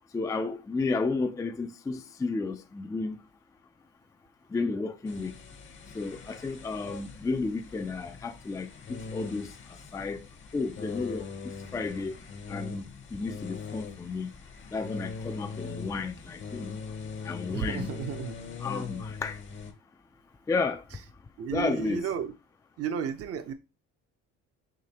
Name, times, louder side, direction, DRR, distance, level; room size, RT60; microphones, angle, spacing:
voice 1, 0.1-3.2 4.5-5.3 5.9-10.3 10.5-12.2 12.5-12.8 13.1-14.3 14.7-16.8 17.2-17.9 18.6-19.4 20.5-20.9 21.5-22.1, left 3 dB, 10° left, 0.4 m, -32 dB
sound 1, 5.1-19.7, left 5 dB, 40° left, 0.9 m, -41 dB
voice 2, 17.5-18.3 21.4-22.3 22.8-23.5, right 7 dB, 55° right, 0.7 m, -32 dB
5.0 x 3.2 x 2.8 m
cardioid pair, 95°, 29 cm